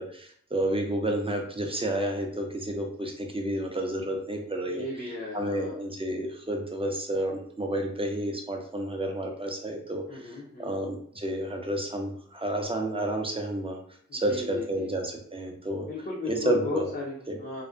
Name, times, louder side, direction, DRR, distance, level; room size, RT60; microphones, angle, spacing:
voice 1, 0.0-5.1 5.3-10.3 10.6-13.8 14.1-15.9 16.3-16.9 17.3-17.4, right 1 dB, 20° right, 2 dB, 0.5 m, -30 dB
voice 2, 4.7-5.8 10.1-10.8 14.1-14.9 15.9-17.6, left 3 dB, 30° left, -4 dB, 0.5 m, -36 dB
2.4 x 2.1 x 2.4 m, 0.62 s
wide cardioid pair, 60°, 30 cm